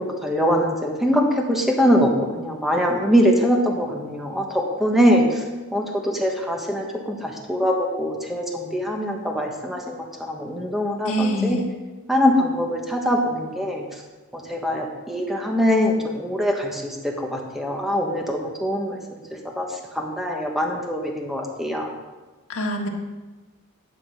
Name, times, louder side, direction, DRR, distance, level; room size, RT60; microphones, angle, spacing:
voice 1, 0.0-2.1 2.4-5.4 5.7-11.6 12.1-13.8 14.3-19.2 19.6-19.7 19.9-21.9, equal, ahead, 0 dB, 1.4 m, -23 dB
voice 2, 11.0-11.7 22.5-22.9, equal, 85° left, 0 dB, 1.7 m, -24 dB
11.5 x 7.1 x 5.7 m, 1.2 s
head